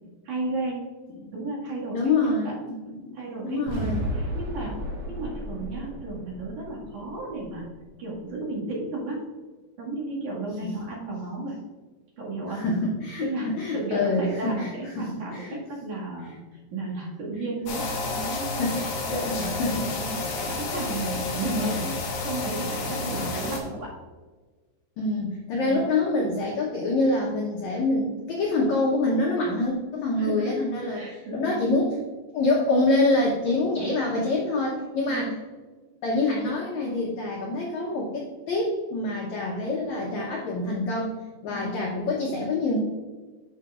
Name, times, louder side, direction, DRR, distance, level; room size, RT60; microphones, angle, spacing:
voice 1, 0.2-0.9 1.3-2.6 3.1-4.8 5.1-7.7 8.0-9.3 9.8-11.6 12.2-12.6 13.2-16.4 16.7-21.9 22.2-23.9 25.6-25.9 30.2-30.6 30.9-31.5 34.0-34.3 35.1-35.3 41.5-41.8, right 2 dB, 55° right, -5 dB, 3.1 m, -34 dB
voice 2, 1.9-3.2 3.4-4.0 10.6-10.7 12.5-15.6 18.3-19.9 21.8-21.9 23.0-23.3 25.0-32.0 32.3-35.3 36.0-41.1 41.4-42.8, left 2 dB, 85° left, -2 dB, 1.6 m, -26 dB
sound 1, 3.7-7.8, right 1 dB, 75° right, 3.7 m, -34 dB
sound 2, 17.7-23.6, left 2 dB, 60° left, 2.5 m, -30 dB
11.5 x 5.8 x 2.5 m, 1.3 s
omnidirectional pair, 4.7 m